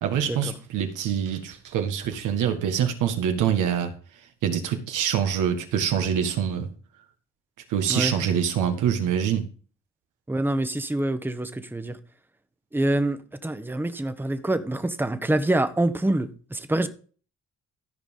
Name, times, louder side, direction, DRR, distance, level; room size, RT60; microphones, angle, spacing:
voice 1, 0.0-3.9 4.4-6.7 7.7-9.5, right 8 dB, 90° right, 1.7 m, -25 dB
voice 2, 10.3-12.0 12.7-16.9, right 1 dB, 5° right, 1.0 m, -26 dB
13.5 x 5.1 x 5.5 m
cardioid pair, 90°, 30 cm